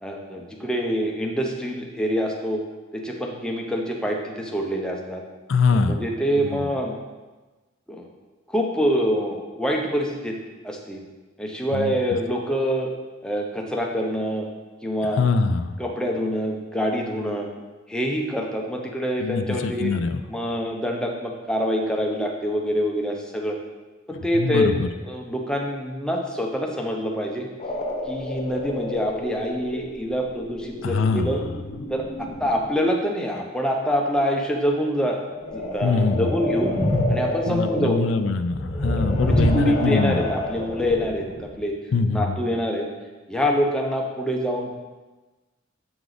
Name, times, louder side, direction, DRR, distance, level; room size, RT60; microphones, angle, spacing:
voice 1, 0.0-2.6 2.9-5.2 5.7-7.0 7.9-8.1 8.5-10.3 10.6-11.0 11.4-12.9 13.2-14.5 14.8-15.2 15.8-17.5 17.9-19.9 20.3-23.6 24.1-24.7 25.0-27.5 28.1-31.4 31.9-35.2 35.5-36.7 37.1-38.0 39.0-41.8 42.1-42.9 43.3-44.8, equal, 5° left, 0 dB, 0.8 m, -25 dB
voice 2, 5.5-6.0 6.5-6.7 11.7-11.9 15.2-15.8 19.2-20.2 24.3-24.9 30.8-31.5 35.8-36.3 37.5-40.2 41.9-42.4, left 4 dB, 70° left, 9 dB, 0.4 m, -23 dB
sound 1, 27.6-32.7 35.3-41.6, left 1 dB, 35° left, 1.0 m, -28 dB
7.9 x 4.7 x 4.0 m, 1.2 s
head